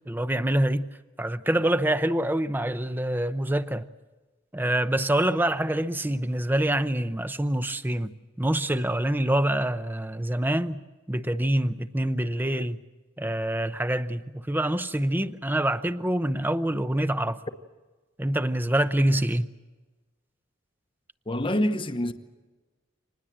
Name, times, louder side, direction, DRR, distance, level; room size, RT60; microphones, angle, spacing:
voice 1, 0.1-0.9 1.2-3.9 4.5-10.8 11.1-12.8 13.2-17.4 18.2-19.5, right 1 dB, 10° right, 0.7 m, -26 dB
voice 2, 21.3-22.1, left 1 dB, 25° left, 1.0 m, -26 dB
26.0 x 20.0 x 7.6 m
head